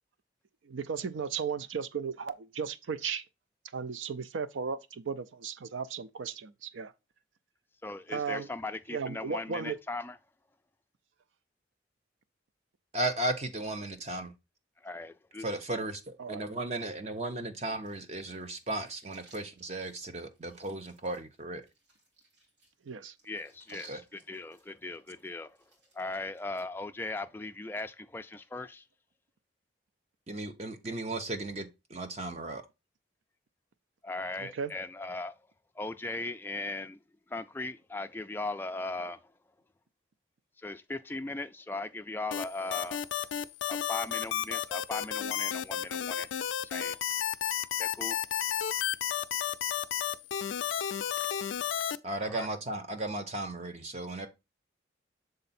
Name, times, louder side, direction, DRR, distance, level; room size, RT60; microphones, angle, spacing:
voice 1, 0.6-3.3 3.7-6.9 8.1-8.5 8.9-9.8 16.2-16.4 22.8-23.1 34.4-34.7, right 6 dB, 90° right, 0.5 m, -35 dB
voice 2, 7.8-10.2 14.8-15.5 23.2-25.6 25.9-28.8 34.0-35.4 35.8-37.0 37.3-39.2 40.6-43.1 43.7-46.3 46.6-47.0 47.8-48.2 52.2-52.5, left 2 dB, 10° left, 0.3 m, -38 dB
voice 3, 12.9-14.3 15.4-21.6 23.9-24.0 30.3-32.6 52.0-54.3, right 2 dB, 35° right, 0.8 m, -35 dB
sound 1, 17.8-26.6, right 3 dB, 70° right, 3.2 m, -60 dB
sound 2, 42.3-52.0, left 10 dB, 85° left, 0.4 m, -32 dB
6.7 x 3.9 x 4.2 m
head